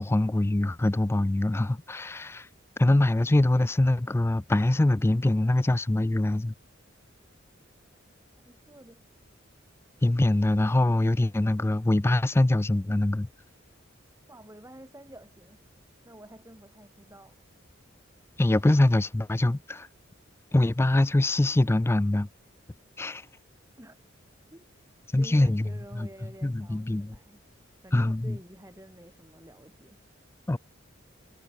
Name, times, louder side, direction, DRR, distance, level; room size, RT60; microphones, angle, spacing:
voice 1, 0.0-2.5 2.8-6.5 10.0-13.3 18.4-19.9 20.5-22.3 23.0-23.3 25.1-26.1 26.4-27.2 27.9-28.4 30.5-30.6, left 1 dB, 10° left, 0.3 m, -24 dB
voice 2, 8.5-9.0 14.3-15.6 16.0-17.4 23.8-24.0 24.5-24.6 25.2-27.4 27.8-30.0, right 1 dB, 15° right, 7.7 m, -49 dB
head